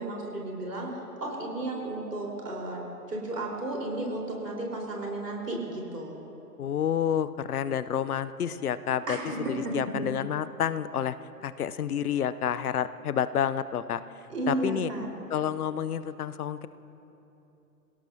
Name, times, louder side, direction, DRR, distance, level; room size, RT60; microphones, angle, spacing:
voice 1, 0.0-2.8 3.1-6.2 9.1-10.1 14.3-15.1, right 2 dB, 80° right, -2 dB, 4.2 m, -33 dB
voice 2, 6.6-9.2 9.5-11.2 11.4-14.0 14.5-14.9 15.3-16.7, left 9 dB, 70° left, 14 dB, 0.7 m, -29 dB
28.0 x 17.5 x 2.7 m, 3.0 s
figure-of-eight pair, 115°, 47 cm